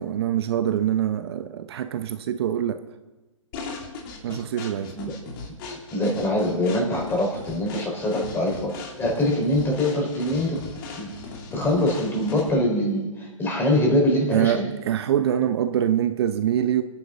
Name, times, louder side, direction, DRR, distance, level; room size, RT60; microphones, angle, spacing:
voice 1, 0.0-2.8 4.2-5.0 14.3-16.8, right 10 dB, 55° right, 9 dB, 0.8 m, -24 dB
sound 1, 3.5-12.7, left 4 dB, 40° left, 2.7 m, -38 dB
voice 2, 5.7-8.7 9.0-10.6 11.0-11.1 11.5-14.7, left 1 dB, 15° left, -1 dB, 4.5 m, -23 dB
25.0 x 10.5 x 4.0 m, 1.2 s
hypercardioid pair, 135°, 16 cm